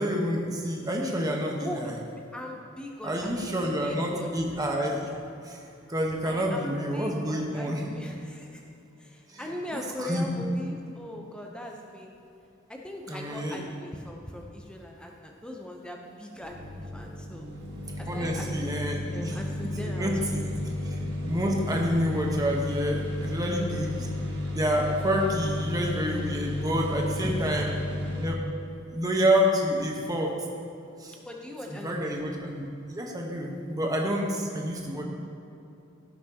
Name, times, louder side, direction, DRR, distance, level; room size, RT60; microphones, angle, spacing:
voice 1, 0.0-1.9 3.0-5.1 5.4-5.6 5.9-7.9 9.3-10.4 13.1-13.6 18.1-19.4 19.8-20.5 20.9-21.0 21.2-24.1 24.5-27.7 28.2-28.4 28.9-30.3 31.0-31.2 31.7-35.0, equal, 20° right, 0 dB, 1.1 m, -28 dB
voice 2, 1.6-2.0 2.3-4.3 6.2-8.6 9.0-12.1 12.7-17.5 18.0-20.6 27.2-27.5 31.2-32.1, left 1 dB, 5° left, 0 dB, 0.7 m, -40 dB
sound 1, 16.4-28.3, left 1 dB, 60° right, 1.5 m, -33 dB
16.0 x 6.0 x 2.9 m, 2.8 s
head